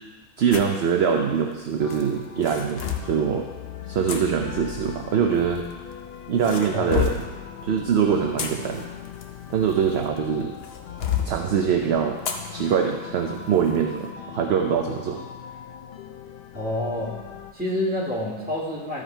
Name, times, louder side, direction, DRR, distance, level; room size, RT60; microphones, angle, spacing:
voice 1, 0.4-3.5 3.9-5.6 6.3-7.2 7.6-8.9 9.5-10.6 11.2-12.2 12.5-15.2, right 7 dB, 60° right, 3 dB, 0.7 m, -23 dB
sound 1, 0.5-0.8 1.9-3.1 4.1-4.2 5.3-6.0 6.4-7.3 8.1-10.2 10.6-11.3 12.2-12.5 12.9-13.0 13.6-13.8, left 8 dB, 50° left, 0.9 m, -29 dB
sound 2, 1.8-17.5, left 8 dB, 85° left, 0.5 m, -40 dB
voice 2, 16.5-17.1 17.5-19.0, left 1 dB, 5° right, -7 dB, 2.2 m, -27 dB
13.0 x 5.0 x 4.4 m, 1.3 s
omnidirectional pair, 1.5 m